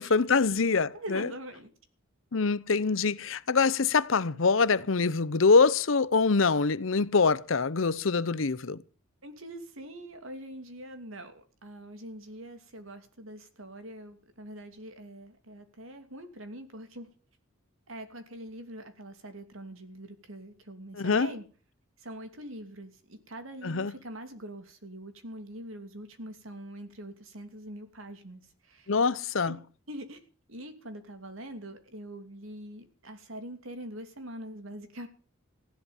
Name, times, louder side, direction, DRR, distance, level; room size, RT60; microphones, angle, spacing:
voice 1, 0.0-1.3 2.3-8.8 21.0-21.3 23.6-23.9 28.9-29.6, left 4 dB, 70° left, 0.8 m, -24 dB
voice 2, 0.9-1.7 9.2-17.1 17.9-21.5 22.0-28.9 29.5-30.2 30.5-35.1, right 1 dB, 80° right, 2.8 m, -43 dB
15.5 x 11.5 x 7.2 m
head